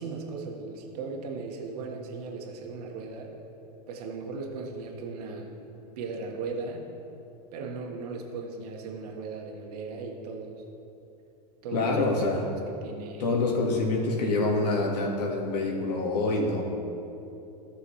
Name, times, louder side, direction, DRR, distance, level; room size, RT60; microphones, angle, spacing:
voice 1, 0.0-3.4 3.9-5.5 6.0-6.9 7.5-10.6 11.6-12.3 12.7-13.4, right 4 dB, 65° right, 1 dB, 1.5 m, -37 dB
voice 2, 11.7-12.4 13.2-16.6, left 2 dB, 75° left, -1 dB, 1.9 m, -26 dB
14.5 x 6.7 x 3.3 m, 2.9 s
hypercardioid pair, 110°, 21 cm